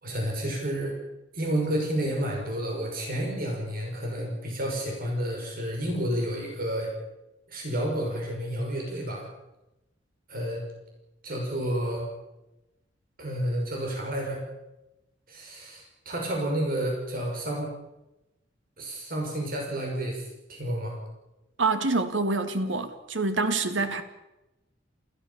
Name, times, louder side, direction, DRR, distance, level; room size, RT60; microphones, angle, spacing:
voice 1, 0.0-1.0 1.3-6.9 7.5-9.2 10.3-10.6 11.2-12.0 13.2-14.4 15.3-17.7 18.8-20.2 20.5-21.0, right 1 dB, 50° right, 5.9 m, -30 dB
voice 2, 21.6-24.0, right 3 dB, 70° right, 2.1 m, -26 dB
29.5 x 14.5 x 7.2 m
head